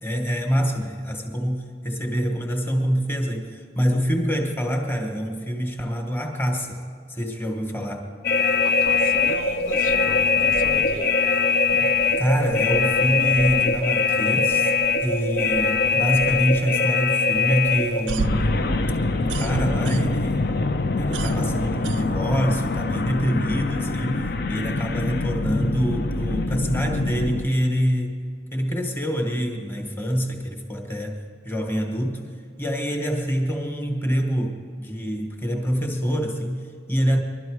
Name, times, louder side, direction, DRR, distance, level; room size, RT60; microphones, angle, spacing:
voice 1, 0.0-6.8 7.1-8.1 11.7-14.7 15.0-18.6 19.2-20.4 21.0-28.2 28.5-32.3 32.6-37.2, equal, 10° left, 2 dB, 1.3 m, -25 dB
sound 1, 8.2-27.5, left 4 dB, 55° left, 0.6 m, -23 dB
voice 2, 8.6-11.2, left 2 dB, 85° left, 2 dB, 1.3 m, -38 dB
sound 2, 17.9-20.4 20.7-22.6, right 6 dB, 70° right, 0.3 m, -32 dB
21.5 x 12.5 x 4.8 m, 2.2 s
head